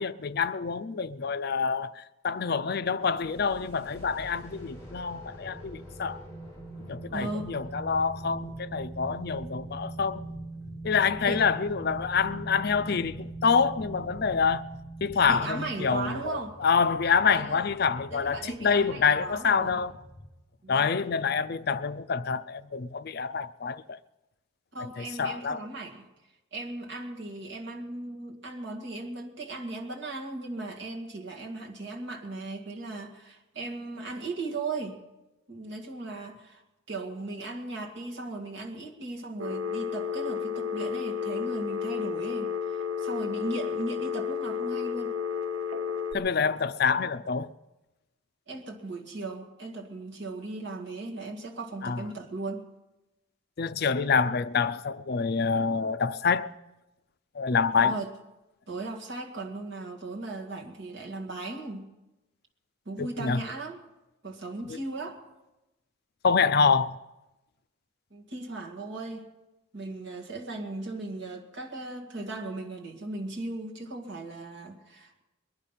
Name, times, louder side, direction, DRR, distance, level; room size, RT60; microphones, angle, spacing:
voice 1, 0.0-6.2 6.8-10.3 10.8-14.7 15.0-19.9 20.7-24.0 25.2-25.6 46.1-47.5 51.8-52.0 53.6-56.5 57.3-58.0 63.0-63.4 64.7-64.8 66.2-67.0, left 5 dB, 50° left, 0.5 m, -27 dB
sound 1, 3.0-20.3, right 2 dB, 15° left, 6.0 m, -43 dB
voice 2, 7.1-7.5 11.2-11.4 15.3-16.6 17.3-17.6 18.1-19.8 20.6-20.9 24.7-26.1 26.5-35.0 35.5-36.6 36.9-45.2 48.5-52.7 57.8-58.1 58.7-61.9 62.9-63.8 64.2-65.2 68.1-69.3 69.7-75.2, right 2 dB, 55° right, 2.1 m, -37 dB
Telephone, 39.4-46.1, left 7 dB, 70° right, 0.9 m, -32 dB
21.5 x 11.0 x 5.7 m
head